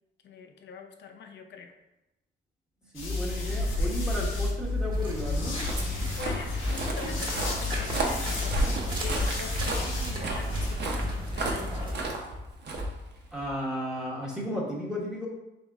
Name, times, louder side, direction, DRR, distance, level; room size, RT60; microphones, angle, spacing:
voice 1, 0.2-1.7 6.2-12.0, left 5 dB, 65° left, 6 dB, 0.6 m, -43 dB
sound 1, 2.9-10.7, left 2 dB, 85° left, 1.0 m, -31 dB
voice 2, 2.9-5.6 13.3-15.3, equal, 5° right, -4 dB, 1.1 m, -34 dB
sound 2, 4.9-11.9, left 1 dB, 25° right, 1.3 m, -33 dB
Walk footsteps, 5.2-13.5, right 2 dB, 60° right, 0.9 m, -34 dB
3.6 x 3.4 x 3.5 m, 0.94 s
cardioid pair, 90°, 20 cm